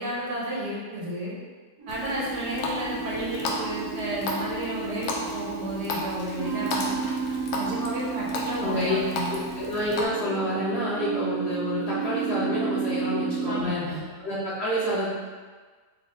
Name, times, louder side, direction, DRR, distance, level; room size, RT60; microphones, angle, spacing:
voice 1, 0.0-1.4 1.9-7.1 7.5-9.4 13.5-14.1, right 1 dB, 75° right, -5 dB, 1.6 m, -32 dB
sound 1, 1.8-13.6, right 6 dB, 55° right, 1.2 m, -32 dB
Water tap faucet, 1.9-10.1, left 2 dB, 85° left, 1.2 m, -35 dB
voice 2, 8.6-9.0 9.3-13.9 14.2-15.1, left 1 dB, 50° left, -8 dB, 0.9 m, -28 dB
4.7 x 2.8 x 3.3 m, 1.4 s
omnidirectional pair, 1.8 m